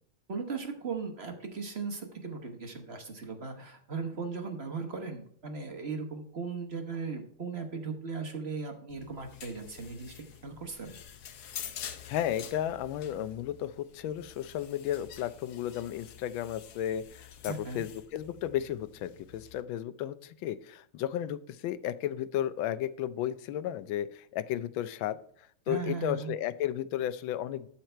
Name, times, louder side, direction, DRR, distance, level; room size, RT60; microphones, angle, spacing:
voice 1, 0.3-11.0 17.5-17.8 25.7-26.3, right 4 dB, 40° right, 5 dB, 0.9 m, -37 dB
sound 1, 8.9-19.6, left 9 dB, 60° left, 1.2 m, -48 dB
voice 2, 12.1-25.2 25.7-27.7, left 11 dB, 75° left, 15 dB, 1.3 m, -33 dB
12.0 x 4.6 x 4.4 m, 0.64 s
omnidirectional pair, 2.3 m